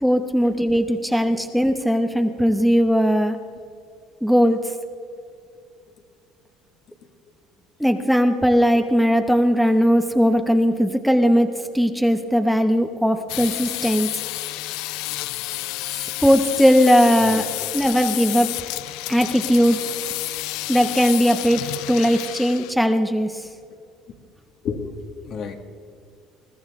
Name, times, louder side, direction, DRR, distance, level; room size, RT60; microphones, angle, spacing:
voice 1, 0.0-3.4 4.2-4.6 7.8-11.5 11.7-14.1 15.9-17.5 17.7-18.5 19.1-19.8 20.7-23.5, equal, ahead, 6 dB, 0.9 m, -18 dB
sound 1, 13.3-22.7, left 19 dB, 80° left, 0.3 m, -30 dB
voice 2, 24.6-25.6, left 6 dB, 55° left, 4 dB, 1.9 m, -30 dB
21.5 x 13.0 x 3.7 m, 2.3 s
cardioid pair, 115°, 0 cm